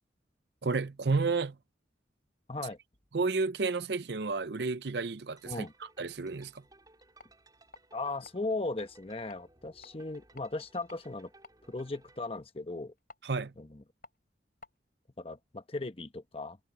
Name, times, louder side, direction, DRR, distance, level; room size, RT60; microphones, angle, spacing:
voice 1, 0.6-1.6 3.1-5.7 6.0-6.6 13.2-13.5, right 4 dB, 65° right, 0.6 m, -31 dB
sound 1, 5.4-12.3, right 2 dB, 20° right, 5.6 m, -61 dB
sound 2, 7.0-14.8, left 2 dB, 50° left, 5.3 m, -59 dB
voice 2, 7.9-11.3 11.7-12.9 13.6-13.8 15.2-16.6, left 2 dB, 30° left, 1.0 m, -37 dB
head